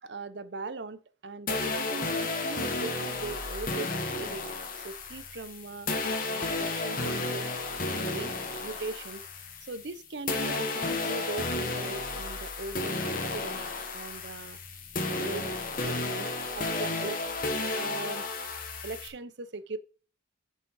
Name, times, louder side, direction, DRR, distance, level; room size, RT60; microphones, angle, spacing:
voice 1, 0.0-4.5 4.8-5.9 6.3-7.5 7.9-9.2 9.6-13.6 13.9-14.6 15.1-16.3 16.6-17.2 17.7-18.3 18.8-19.8, right 3 dB, 60° right, 0.7 m, -40 dB
sound 1, 1.5-10.0 10.3-19.1, left 3 dB, 45° left, 1.3 m, -32 dB
8.1 x 5.2 x 5.5 m
head